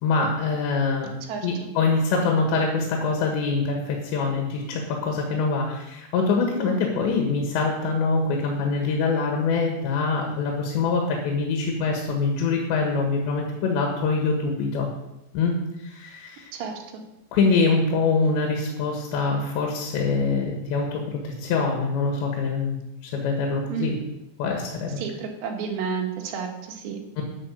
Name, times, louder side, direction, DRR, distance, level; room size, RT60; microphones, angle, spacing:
voice 1, 0.0-1.1 1.4-14.9 15.3-16.5 17.3-22.8 23.0-24.0 24.4-25.0 27.2-27.3, left 4 dB, 90° left, 1 dB, 3.8 m, -24 dB
voice 2, 1.2-1.7 16.5-17.0 23.7-23.9 25.0-27.0, right 6 dB, 80° right, 3 dB, 3.8 m, -31 dB
10.5 x 8.8 x 6.6 m, 0.94 s
omnidirectional pair, 5.0 m